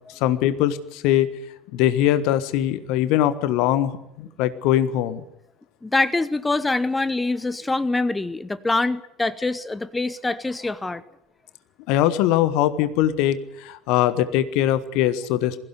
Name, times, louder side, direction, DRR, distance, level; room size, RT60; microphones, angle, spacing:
voice 1, 0.1-1.3 1.7-5.2 11.9-15.6, left 12 dB, 60° left, 13 dB, 1.4 m, -21 dB
voice 2, 5.8-11.0, left 2 dB, 15° left, 16 dB, 0.9 m, -24 dB
22.0 x 16.0 x 9.6 m, 0.83 s
figure-of-eight pair, 65°, 0 cm